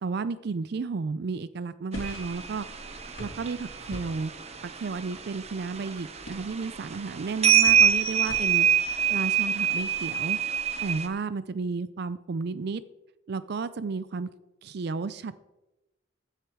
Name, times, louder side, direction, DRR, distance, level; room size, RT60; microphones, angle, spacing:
voice 1, 0.0-2.7 3.2-4.3 4.6-8.7 9.1-10.4 10.8-12.8 13.3-14.3 14.6-15.4, right 4 dB, 55° right, 15 dB, 0.4 m, -32 dB
sound 1, 1.9-8.7, left 1 dB, 75° left, 2.4 m, -45 dB
sound 2, 1.9-11.1, right 8 dB, 35° right, 0.9 m, -26 dB
15.0 x 6.6 x 4.7 m, 0.98 s
head